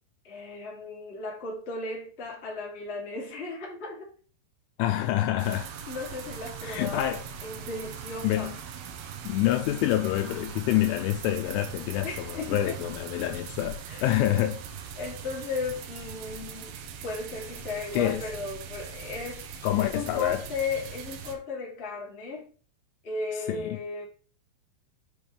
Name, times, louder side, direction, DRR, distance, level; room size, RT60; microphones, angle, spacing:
voice 1, 0.2-4.1 5.9-8.5 12.0-12.8 13.9-14.0 14.9-22.5 23.0-24.0, left 3 dB, 35° left, 0.9 m, -36 dB
voice 2, 4.8-5.7 6.6-7.2 8.2-8.6 9.2-14.6 17.9-18.2 19.6-20.4 23.5-23.8, left 13 dB, 85° left, 2.8 m, -27 dB
sound 1, 5.4-21.4, right 6 dB, 80° right, 3.3 m, -41 dB
7.1 x 6.9 x 3.3 m
omnidirectional pair, 6.0 m